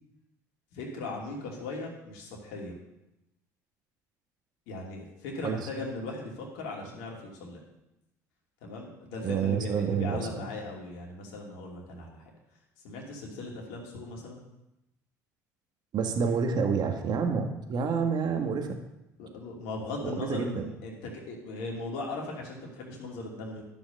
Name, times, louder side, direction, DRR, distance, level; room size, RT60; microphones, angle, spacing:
voice 1, 0.7-2.7 4.7-7.6 8.6-12.3 12.8-14.4 19.2-23.6, left 2 dB, 70° left, -1 dB, 2.8 m, -38 dB
voice 2, 9.2-10.4 15.9-18.8 20.0-20.6, right 6 dB, 55° right, 4 dB, 1.8 m, -28 dB
12.5 x 6.2 x 6.6 m, 0.91 s
hypercardioid pair, 65°, 9 cm